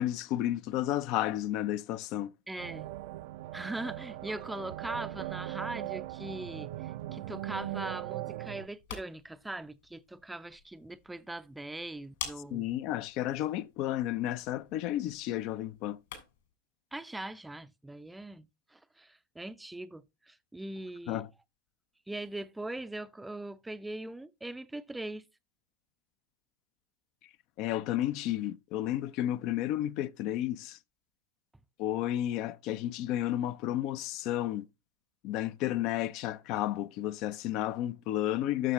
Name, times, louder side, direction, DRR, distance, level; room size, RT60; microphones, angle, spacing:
voice 1, 0.0-2.3 12.5-16.0 21.1-21.3 27.6-30.8 31.8-34.7 35.2-38.7, left 13 dB, 45° left, 0.5 m, -32 dB
voice 2, 2.5-2.9 3.5-12.7 16.9-21.2 22.1-25.3, right 2 dB, 5° right, 0.5 m, -41 dB
sound 1, 2.6-8.7, right 16 dB, 55° right, 0.5 m, -39 dB
sound 2, 8.6-16.5, left 9 dB, 60° left, 2.7 m, -49 dB
12.5 x 6.4 x 3.0 m
figure-of-eight pair, 80°, 0 cm